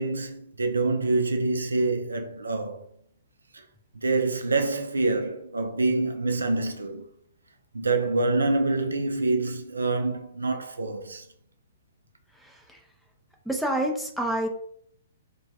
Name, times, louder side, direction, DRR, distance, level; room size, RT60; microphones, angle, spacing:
voice 1, 0.0-2.8 3.5-3.6 3.9-7.1 7.7-11.2, right 3 dB, 75° right, 0.3 m, -26 dB
voice 2, 12.4-12.8 13.5-14.5, right 1 dB, ahead, 0.4 m, -28 dB
2.2 x 2.1 x 2.7 m
figure-of-eight pair, 115°, 0 cm